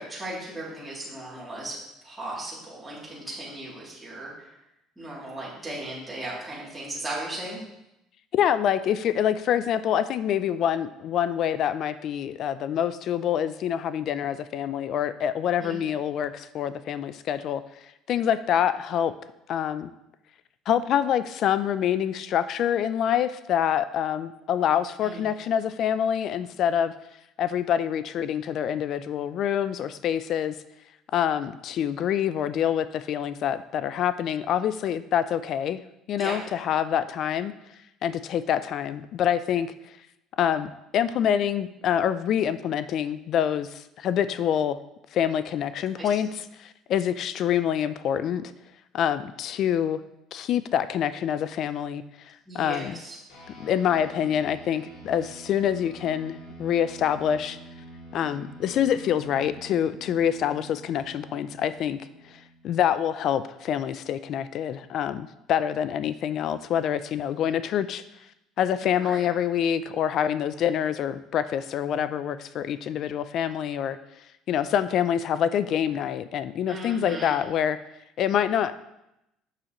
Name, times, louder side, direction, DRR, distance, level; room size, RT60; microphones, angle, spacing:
voice 1, 0.0-1.8 2.0-4.6 5.0-7.6 15.6-15.8 25.0-25.2 36.1-36.4 45.9-46.1 52.5-53.2 68.8-69.2 76.7-77.4, right 1 dB, 5° right, -8 dB, 2.8 m, -37 dB
voice 2, 8.3-17.6 18.1-19.1 19.5-19.9 20.7-26.9 27.4-30.5 31.1-35.8 36.1-37.5 38.0-39.7 40.4-44.8 45.1-48.5 48.9-50.0 50.3-53.0 53.6-57.6 58.1-62.0 62.6-68.0 68.6-74.0 74.5-77.8 78.2-78.7, left 9 dB, 55° left, 14 dB, 0.3 m, -26 dB
sound 1, 53.3-63.0, right 1 dB, 80° left, 2.5 m, -47 dB
7.3 x 6.2 x 3.0 m, 0.87 s
cardioid pair, 120°, 0 cm